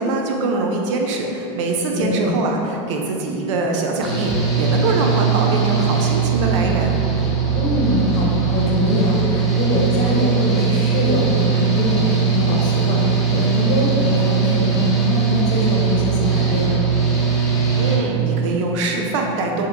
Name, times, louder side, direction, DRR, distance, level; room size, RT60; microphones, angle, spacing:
voice 1, 0.0-6.9 17.7-19.7, right 3 dB, 80° right, 1 dB, 0.5 m, -23 dB
voice 2, 1.9-2.4 7.5-16.8, left 2 dB, 60° left, -3 dB, 0.7 m, -22 dB
Engine / Mechanical fan, 4.0-17.9, right 6 dB, ahead, 0.9 m, -20 dB
2.8 x 2.1 x 3.5 m, 2.8 s
supercardioid pair, 120°, 16 cm